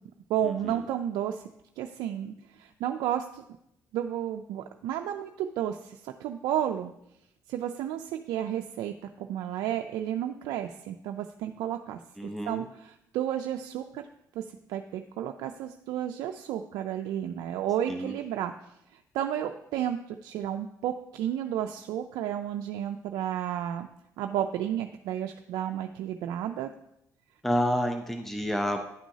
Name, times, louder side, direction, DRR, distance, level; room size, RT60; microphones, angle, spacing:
voice 1, 0.3-1.4 1.8-3.4 3.9-6.9 7.5-12.0 12.5-14.0 14.4-14.5 14.7-18.5 19.1-23.9 24.2-26.7, right 10 dB, 85° right, 5 dB, 0.4 m, -32 dB
voice 2, 12.2-12.7 17.9-18.1 27.4-28.8, equal, 5° left, 5 dB, 0.7 m, -29 dB
11.0 x 6.1 x 2.7 m, 0.80 s
supercardioid pair, 70°, 7 cm